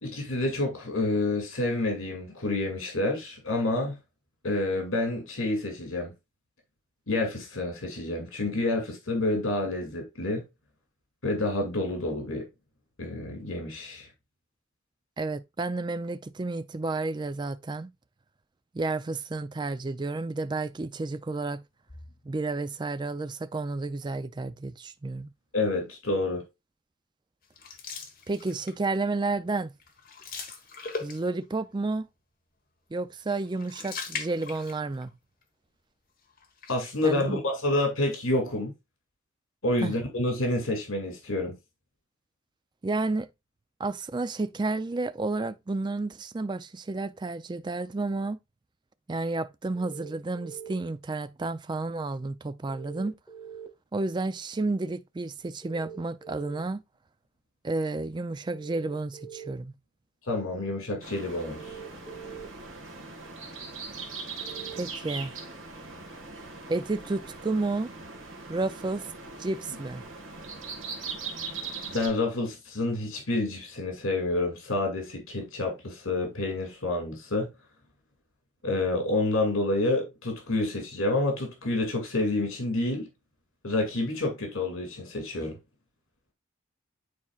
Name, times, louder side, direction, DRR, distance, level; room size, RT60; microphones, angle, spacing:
voice 1, 0.0-4.0 4.4-6.1 7.1-10.4 11.2-12.4 13.0-14.1 25.5-26.4 36.7-38.7 39.6-41.6 60.3-61.7 71.9-77.5 78.6-83.1 83.6-85.6, left 2 dB, 90° left, 2.3 m, -28 dB
voice 2, 15.2-17.9 18.7-21.6 22.2-25.3 28.3-29.7 31.0-32.1 32.9-35.2 37.0-37.4 39.8-40.0 42.8-43.3 43.8-48.4 49.1-53.2 53.9-56.8 57.6-59.7 64.7-65.4 66.7-67.9 68.5-69.1 69.4-70.0, right 3 dB, 20° right, 0.3 m, -31 dB
sound 1, 27.5-28.9 29.3-29.5 29.8-31.5 33.3-35.1 35.4-35.5 36.4-37.2, left 5 dB, 45° left, 1.4 m, -40 dB
sound 2, 49.7-50.7 52.7-53.7 55.6-56.6 58.5-59.5 61.5-62.5 64.4-64.8, right 7 dB, 5° left, 1.4 m, -43 dB
sound 3, 61.0-72.1, right 4 dB, 70° right, 1.7 m, -40 dB
9.5 x 4.3 x 2.4 m
head